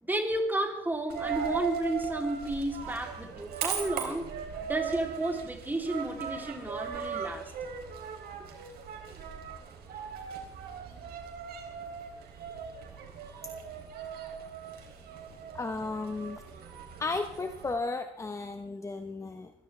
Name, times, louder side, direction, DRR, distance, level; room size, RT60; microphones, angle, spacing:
voice 1, 0.0-7.5, right 1 dB, 10° right, 3.3 m, -32 dB
Coin (dropping), 1.1-17.7, right 7 dB, 70° right, 3.7 m, -39 dB
voice 2, 15.5-16.4 17.0-19.5, left 3 dB, 15° left, 1.0 m, -34 dB
23.5 x 16.5 x 3.4 m
cardioid pair, 110°, 17 cm